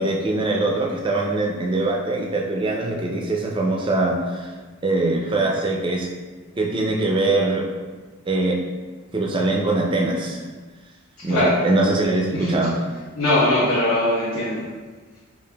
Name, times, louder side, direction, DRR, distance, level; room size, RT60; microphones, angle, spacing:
voice 1, 0.0-4.5 4.8-6.1 6.6-7.7 8.3-8.6 9.1-10.4 11.2-12.8, right 2 dB, 20° right, 0 dB, 0.3 m, -22 dB
voice 2, 13.2-14.6, left 1 dB, 80° left, -8 dB, 0.7 m, -20 dB
4.9 x 2.5 x 2.2 m, 1.4 s
head